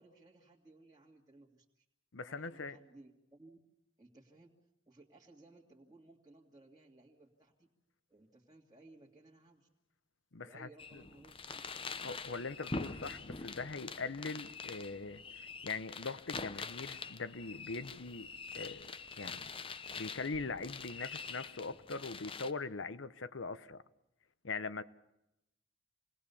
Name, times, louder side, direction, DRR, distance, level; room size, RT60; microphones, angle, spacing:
voice 1, 0.0-1.8 2.2-3.6 4.0-4.5 4.9-7.7 8.1-9.7 10.4-11.7, right 2 dB, 20° right, 2.3 m, -60 dB
voice 2, 2.1-2.8 10.3-11.0 12.0-19.5 20.0-23.8 24.4-24.8, left 4 dB, 80° left, 1.0 m, -42 dB
sound 1, 10.8-22.5, left 4 dB, 30° left, 0.8 m, -45 dB
28.0 x 20.0 x 7.0 m
head